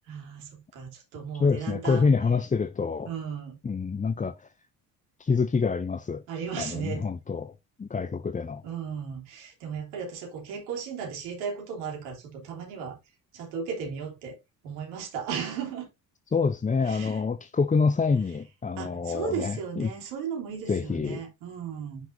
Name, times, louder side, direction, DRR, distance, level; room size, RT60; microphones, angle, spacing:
voice 1, 0.0-2.0 3.0-3.6 6.3-7.1 8.6-13.0 13.3-14.4 14.6-15.9 16.8-17.2 18.8-22.1, right 6 dB, 80° right, 3.2 m, -35 dB
voice 2, 1.3-3.1 3.6-4.5 5.2-6.2 6.6-7.5 7.8-8.6 16.3-19.9 20.7-21.2, left 5 dB, 15° left, 0.6 m, -26 dB
10.0 x 5.8 x 2.7 m
hypercardioid pair, 55°, 47 cm